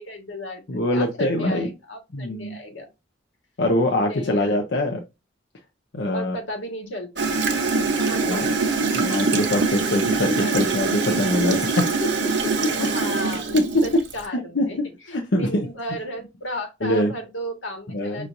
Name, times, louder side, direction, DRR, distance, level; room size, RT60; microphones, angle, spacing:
voice 1, 0.0-0.6 0.9-2.9 4.0-4.5 6.1-7.3 8.0-8.7 10.4-10.5 12.8-13.5 13.8-14.8 15.1-18.3, equal, 85° left, 1.6 m, -34 dB
voice 2, 0.7-1.7 2.1-2.6 3.6-5.0 5.9-6.4 8.3-8.5 8.9-12.1 12.8-12.9 13.5-13.6 14.3-14.9 15.1-15.7 16.8-17.1 17.9-18.3, left 1 dB, 60° left, 0.7 m, -23 dB
Gurgling / Toilet flush, 7.2-14.2, right 4 dB, 65° right, 0.9 m, -23 dB
5.7 x 3.1 x 2.6 m
head